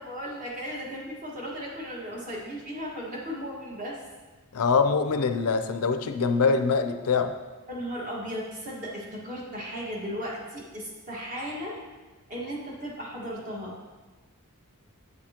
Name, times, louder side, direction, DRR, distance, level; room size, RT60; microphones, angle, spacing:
voice 1, 0.0-4.0 7.7-11.8 12.3-13.7, equal, 35° right, -3 dB, 1.6 m, -36 dB
voice 2, 4.5-7.3, left 5 dB, 75° left, 8 dB, 0.5 m, -24 dB
8.4 x 7.3 x 2.9 m, 1.2 s
head